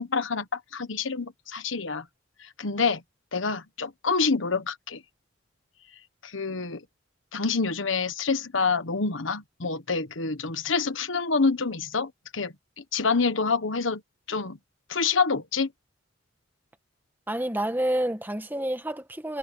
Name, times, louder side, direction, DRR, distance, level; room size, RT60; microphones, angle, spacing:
voice 1, 0.0-2.0 2.6-3.0 3.3-5.0 6.2-6.8 7.3-14.0 14.3-14.6 14.9-15.7, left 4 dB, 85° left, 1.3 m, -27 dB
voice 2, 17.3-19.4, right 1 dB, 10° right, 1.6 m, -28 dB
head